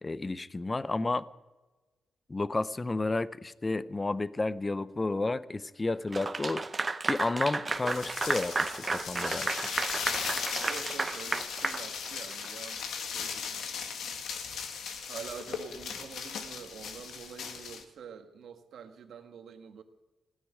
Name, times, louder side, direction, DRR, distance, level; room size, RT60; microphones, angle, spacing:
voice 1, 0.0-1.3 2.3-6.6 7.1-9.5, left 2 dB, 20° left, 16 dB, 0.6 m, -31 dB
Clapping / Applause, 6.1-12.5, right 3 dB, 25° right, 0.7 m, -33 dB
sound 1, 7.7-17.8, left 6 dB, 80° left, 1.8 m, -37 dB
voice 2, 10.6-14.1 15.1-19.8, right 7 dB, 75° right, 6 dB, 1.6 m, -46 dB
16.5 x 10.0 x 8.3 m, 1.2 s
wide cardioid pair, 140°, 0 cm